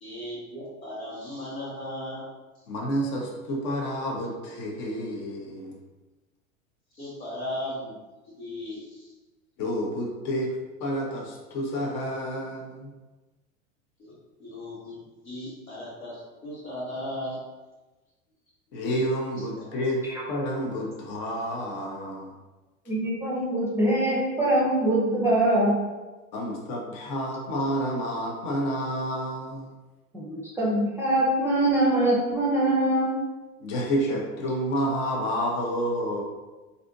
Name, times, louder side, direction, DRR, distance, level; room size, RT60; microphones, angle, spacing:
voice 1, 0.0-2.2 7.0-7.9 8.4-8.8 14.0-14.1 14.4-15.0 15.2-17.4 19.6-19.7, left 1 dB, 85° left, -7 dB, 1.5 m, -36 dB
voice 2, 2.7-5.8 9.6-10.5 10.8-12.9 18.7-22.3 26.3-29.7 33.6-36.2, equal, 45° left, 0 dB, 0.9 m, -29 dB
voice 3, 22.9-25.7 30.1-33.1, right 1 dB, 5° right, -5 dB, 0.6 m, -23 dB
3.3 x 2.7 x 2.5 m, 1.2 s
hypercardioid pair, 90°, 41 cm